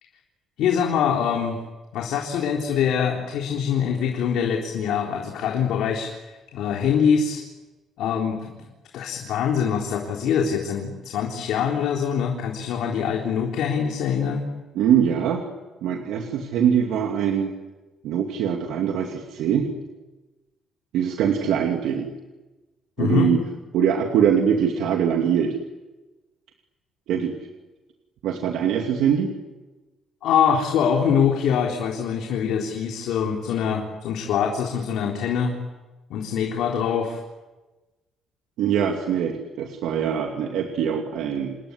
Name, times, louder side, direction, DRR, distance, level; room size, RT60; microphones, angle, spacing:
voice 1, 0.6-1.6 1.9-7.4 8.0-8.7 8.9-14.5 23.0-23.4 30.2-35.5 36.1-37.2, left 7 dB, 80° left, 1 dB, 3.8 m, -24 dB
voice 2, 14.7-15.4 15.8-17.5 18.0-19.7 20.9-22.1 23.0-23.4 23.7-25.5 27.1-27.3 28.2-29.3 38.6-41.6, right 8 dB, 85° right, 2 dB, 2.7 m, -22 dB
28.5 x 21.0 x 9.8 m, 1.2 s
cardioid pair, 170°, 0 cm